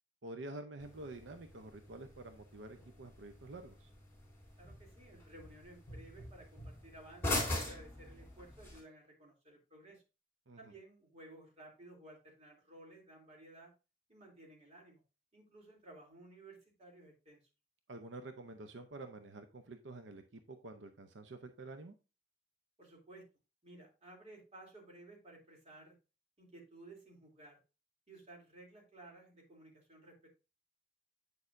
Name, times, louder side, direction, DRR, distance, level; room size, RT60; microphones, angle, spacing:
voice 1, 0.2-3.9 10.5-10.6 17.9-21.9, right 2 dB, 85° right, 7 dB, 0.7 m, -48 dB
sound 1, 0.8-8.8, left 1 dB, 15° left, 3.9 m, -43 dB
voice 2, 4.6-10.0 10.6-13.7 14.1-15.0 15.3-17.4 22.8-23.2 23.6-25.9 26.4-27.6 28.1-30.3, right 2 dB, 35° right, -1 dB, 3.0 m, -56 dB
8.4 x 6.4 x 2.6 m, 0.30 s
head